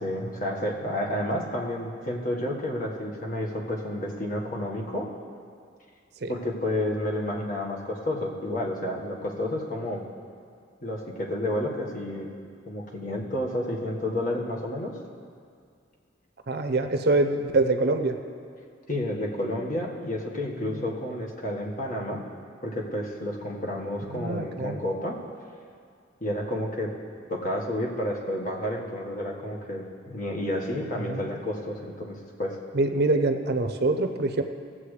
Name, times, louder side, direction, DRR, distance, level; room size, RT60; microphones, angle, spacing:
voice 1, 0.0-5.1 6.3-10.0 10.8-12.3 12.7-14.9 18.9-22.2 22.6-25.2 26.2-26.9 27.3-32.6, left 1 dB, 45° left, -2 dB, 1.5 m, -30 dB
voice 2, 16.5-18.2 20.6-20.8 24.1-24.8 31.0-31.2 32.7-34.4, right 2 dB, 55° right, 6 dB, 0.6 m, -25 dB
18.5 x 7.6 x 3.3 m, 2.2 s
head